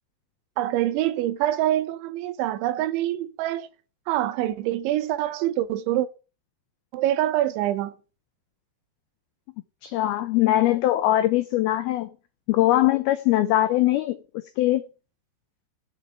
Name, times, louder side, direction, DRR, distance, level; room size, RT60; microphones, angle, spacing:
voice 1, 0.6-3.7 4.1-6.1 6.9-7.9, right 13 dB, 90° right, 3.3 m, -25 dB
voice 2, 9.8-12.1 12.5-14.2 14.6-14.9, left 14 dB, 85° left, 2.1 m, -21 dB
8.3 x 6.7 x 8.3 m
omnidirectional pair, 5.2 m